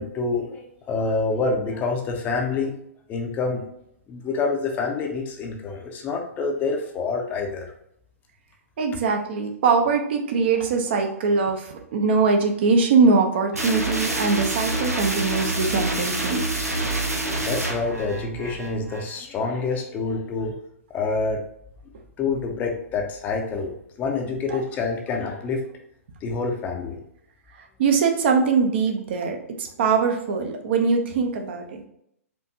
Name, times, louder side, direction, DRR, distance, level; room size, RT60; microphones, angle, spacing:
voice 1, 0.0-2.7 3.1-3.6 4.1-7.6 17.4-20.5 20.9-21.4 22.2-23.7 24.0-25.6 26.2-27.0, left 4 dB, 20° left, 2 dB, 0.6 m, -27 dB
voice 2, 8.8-16.4 24.5-24.6 27.8-31.9, right 4 dB, 45° right, 3 dB, 0.6 m, -22 dB
sound 1, 13.5-19.2, right 2 dB, 85° right, 0.7 m, -27 dB
4.5 x 2.6 x 2.7 m, 0.73 s
figure-of-eight pair, 115°, 8 cm